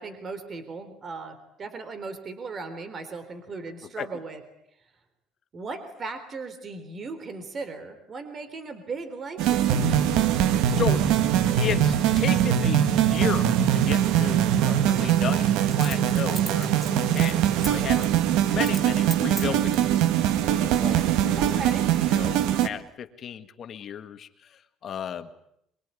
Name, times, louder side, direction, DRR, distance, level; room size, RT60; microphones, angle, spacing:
voice 1, 0.0-4.4 5.5-10.1 21.4-21.9, right 4 dB, 35° right, 10 dB, 3.6 m, -37 dB
sound 1, 9.4-22.7, right 10 dB, 85° right, 1.8 m, -22 dB
voice 2, 10.8-11.1 11.5-18.1 18.4-21.7 22.1-25.3, left 8 dB, 45° left, 9 dB, 1.7 m, -34 dB
Coin (dropping), 13.1-13.2 15.7-17.7 18.0-18.2 18.6-18.9 19.1-19.9 20.5-21.1 21.4-21.5, equal, 5° right, 2.1 m, -38 dB
24.0 x 24.0 x 9.7 m, 0.74 s
cardioid pair, 135°, 0 cm